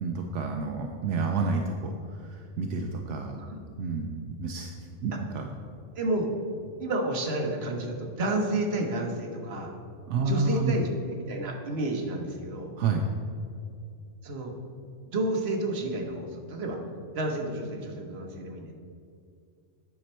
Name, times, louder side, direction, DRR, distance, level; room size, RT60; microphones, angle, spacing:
voice 1, 0.0-3.3 3.8-5.5 10.1-10.7 12.8-13.1, right 4 dB, 80° right, 3 dB, 0.9 m, -29 dB
voice 2, 6.0-6.3 6.8-9.7 10.2-12.7 14.2-14.5 15.1-16.8 17.1-18.7, right 2 dB, 60° right, 2 dB, 1.3 m, -30 dB
9.5 x 6.0 x 4.3 m, 2.4 s
omnidirectional pair, 1.2 m